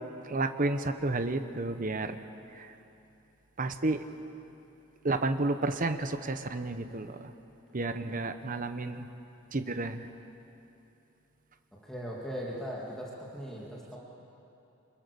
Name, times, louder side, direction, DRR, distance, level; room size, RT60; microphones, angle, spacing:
voice 1, 0.3-2.2 2.6-2.7 3.6-4.0 5.0-7.2 7.7-9.1 9.5-10.0, right 2 dB, 40° right, 9 dB, 1.0 m, -31 dB
voice 2, 11.8-14.0, equal, ahead, -5 dB, 2.7 m, -39 dB
26.0 x 22.0 x 7.0 m, 2.8 s
head